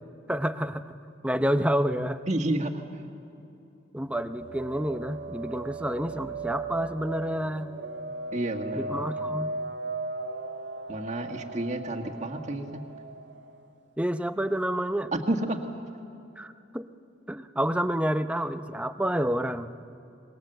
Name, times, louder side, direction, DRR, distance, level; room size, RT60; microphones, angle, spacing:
voice 1, 0.3-1.0 1.2-2.2 3.9-7.7 8.7-9.5 14.0-15.1 16.4-16.9 17.3-19.7, equal, 5° right, 9 dB, 0.7 m, -29 dB
voice 2, 2.3-2.8 8.3-9.0 10.9-12.8 15.1-15.6, right 1 dB, 40° right, 3 dB, 1.7 m, -30 dB
sound 1, 4.4-13.7, right 3 dB, 65° right, 1.9 m, -37 dB
26.0 x 21.5 x 7.9 m, 2.7 s
head